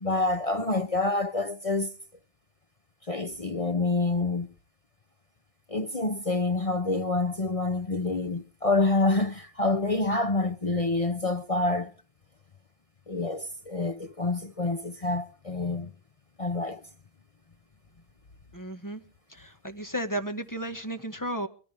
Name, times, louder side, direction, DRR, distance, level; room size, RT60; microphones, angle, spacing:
voice 1, 0.0-1.9 3.1-4.5 5.7-11.9 13.1-15.9 16.4-16.8, left 2 dB, 35° left, 0.6 m, -27 dB
voice 2, 18.5-19.0 19.3-21.5, right 1 dB, 15° left, 1.4 m, -34 dB
22.5 x 15.0 x 3.4 m
omnidirectional pair, 1.4 m